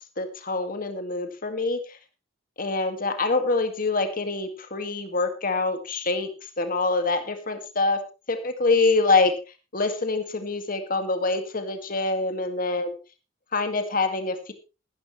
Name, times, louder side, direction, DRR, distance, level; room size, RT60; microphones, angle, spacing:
voice 1, 0.2-1.8 2.6-6.3 6.6-8.0 8.3-9.3 9.7-12.9 13.5-14.5, left 3 dB, 45° left, 8 dB, 2.0 m, -25 dB
15.0 x 13.0 x 3.2 m, 0.30 s
head